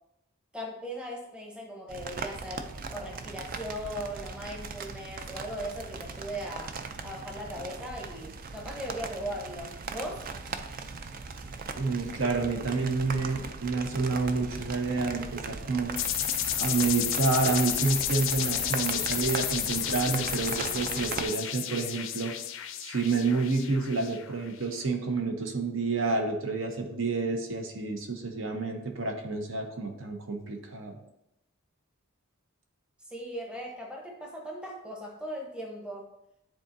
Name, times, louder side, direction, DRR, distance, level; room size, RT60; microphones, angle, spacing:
voice 1, 0.5-6.8 7.0-10.3 33.1-36.1, equal, 5° right, -1 dB, 0.9 m, -38 dB
sound 1, 1.9-21.3, right 4 dB, 40° right, 0.4 m, -39 dB
voice 2, 11.7-15.9 16.6-22.3 22.8-31.0, right 4 dB, 65° right, 4 dB, 0.9 m, -29 dB
sound 2, 16.0-24.5, left 11 dB, 65° left, 0.4 m, -32 dB
9.6 x 3.8 x 2.6 m, 0.87 s
head